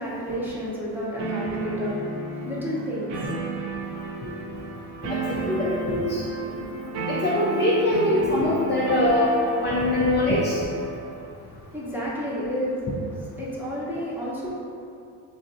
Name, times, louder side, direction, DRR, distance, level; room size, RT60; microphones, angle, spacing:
voice 1, 0.0-2.1 2.4-3.3 3.7-3.8 11.4-12.9 13.4-14.5, equal, 5° right, -7 dB, 0.7 m, -31 dB
sound 1, 1.2-11.3, right 3 dB, 60° right, 0.6 m, -32 dB
voice 2, 5.0-6.2 7.1-9.4 9.6-10.6, left 1 dB, 25° left, -6 dB, 0.4 m, -23 dB
3.2 x 2.5 x 2.6 m, 2.6 s
supercardioid pair, 75°, 48 cm